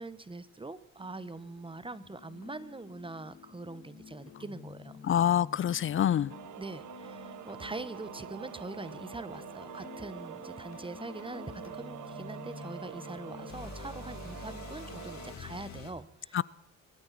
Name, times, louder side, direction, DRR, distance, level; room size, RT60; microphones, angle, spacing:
voice 1, 0.0-5.0 6.6-16.4, right 3 dB, 15° right, 1.0 m, -43 dB
sound 1, 1.0-15.9, left 6 dB, 65° left, 3.9 m, -48 dB
voice 2, 5.0-6.3 16.3-16.4, left 10 dB, 45° left, 0.5 m, -26 dB
sound 2, 6.3-15.4, right 11 dB, 80° right, 1.3 m, -46 dB
24.0 x 13.5 x 4.1 m
cardioid pair, 90°, 30 cm